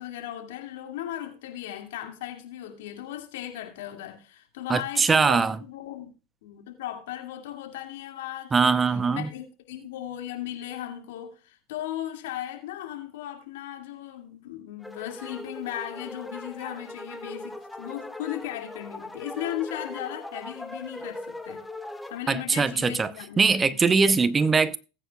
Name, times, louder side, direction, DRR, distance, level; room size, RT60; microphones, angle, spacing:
voice 1, 0.0-6.1 6.4-21.7 22.1-23.8, left 12 dB, 75° left, 2.3 m, -37 dB
voice 2, 4.7-5.6 8.5-9.3 22.3-23.1 23.4-24.8, right 4 dB, 20° right, 0.7 m, -21 dB
sound 1, 14.8-22.2, left 1 dB, 5° left, 1.3 m, -40 dB
19.0 x 9.1 x 2.4 m
hypercardioid pair, 90°, 0 cm